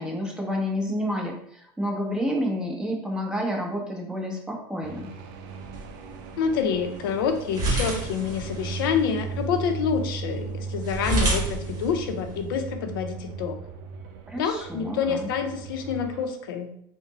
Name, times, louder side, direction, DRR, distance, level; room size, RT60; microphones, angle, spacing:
voice 1, 0.0-5.1 14.3-15.3, equal, 5° right, 0 dB, 0.8 m, -29 dB
sound 1, 4.8-16.3, right 5 dB, 65° right, 0.5 m, -37 dB
sound 2, 5.5-12.5, right 1 dB, 35° right, 1.3 m, -31 dB
voice 2, 6.4-13.6 14.4-16.7, left 6 dB, 85° left, 6 dB, 0.5 m, -27 dB
4.0 x 2.1 x 4.1 m, 0.70 s
supercardioid pair, 120°, 11 cm